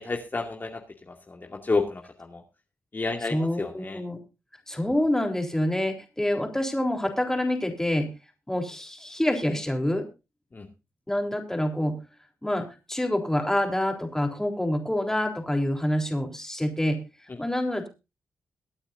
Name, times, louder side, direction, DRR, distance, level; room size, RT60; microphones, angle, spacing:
voice 1, 0.0-2.4 2.9-4.0 10.5-10.7 17.3-17.4, left 3 dB, 35° left, 2 dB, 2.4 m, -31 dB
voice 2, 3.3-4.2 4.7-8.1 8.5-10.0 11.1-12.0 12.4-17.0 17.4-17.9, left 1 dB, 10° left, 3 dB, 3.7 m, -27 dB
23.0 x 8.8 x 2.6 m, 0.28 s
cardioid pair, 80°, 6 cm